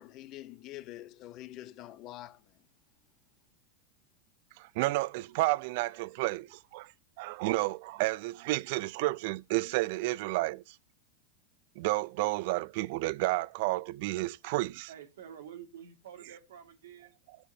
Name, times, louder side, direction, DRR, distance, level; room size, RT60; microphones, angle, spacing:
voice 1, 0.0-2.4, left 14 dB, 45° left, 0.7 m, -46 dB
voice 2, 4.6-6.9 7.2-10.8 11.8-14.9 17.3-17.4, right 20 dB, 60° right, 0.4 m, -31 dB
voice 3, 14.9-17.2, right 9 dB, 75° right, 1.8 m, -48 dB
15.0 x 6.2 x 2.7 m
hypercardioid pair, 105°, 0 cm